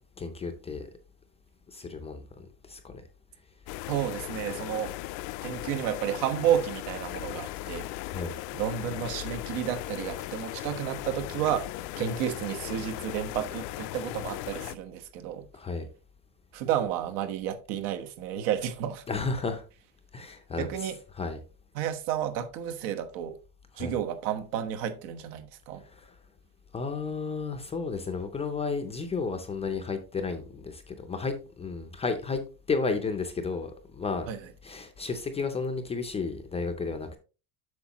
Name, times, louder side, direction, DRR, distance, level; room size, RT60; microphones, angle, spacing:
voice 1, 0.2-0.9 1.7-3.0 8.1-8.3 15.5-15.9 19.1-19.6 20.1-20.7 21.2-21.4 23.8-23.9 26.0-26.1 26.7-32.4 32.7-34.3 34.6-37.2, left 4 dB, 15° left, 0.4 m, -32 dB
sound 1, 3.7-14.7, left 16 dB, 75° left, 0.5 m, -37 dB
voice 2, 3.9-5.0 5.4-7.9 8.5-11.7 12.0-15.5 16.5-19.1 20.6-21.0 21.7-23.4 23.8-25.8 34.3-34.5, right 10 dB, 80° right, 1.3 m, -31 dB
8.1 x 6.2 x 2.9 m
cardioid pair, 175°, 44 cm